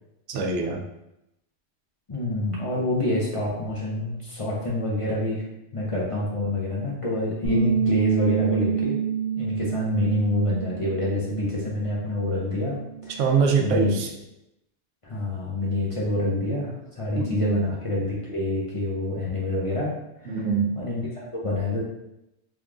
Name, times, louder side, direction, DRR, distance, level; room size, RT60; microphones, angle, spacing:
voice 1, 0.3-0.8 13.2-14.1 17.2-17.6 20.3-20.7, right 5 dB, 90° right, 2 dB, 0.9 m, -23 dB
voice 2, 2.1-5.4 5.7-9.0 9.4-12.8 13.0-13.2 13.6-13.9 15.0-19.9 20.2-20.4 20.7-21.8, left 1 dB, 35° left, -5 dB, 0.7 m, -27 dB
Bass guitar, 7.4-11.8 12.1-13.7, right 7 dB, 55° right, 0.9 m, -28 dB
3.5 x 3.1 x 2.4 m, 0.86 s
omnidirectional pair, 1.2 m